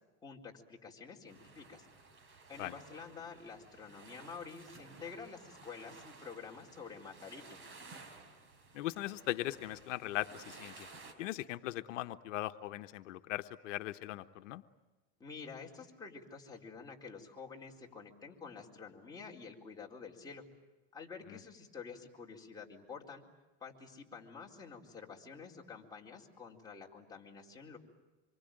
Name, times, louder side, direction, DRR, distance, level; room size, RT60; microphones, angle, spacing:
voice 1, 0.2-1.9 2.5-7.6 15.2-20.4 20.9-23.2 23.6-27.8, left 5 dB, 10° left, -3 dB, 4.2 m, -49 dB
sound 1, 1.3-11.1, right 3 dB, 35° right, 4.8 m, -55 dB
voice 2, 8.7-10.9 11.2-14.6, left 16 dB, 85° left, 9 dB, 1.1 m, -39 dB
26.5 x 24.0 x 9.1 m, 1.2 s
supercardioid pair, 140°, 36 cm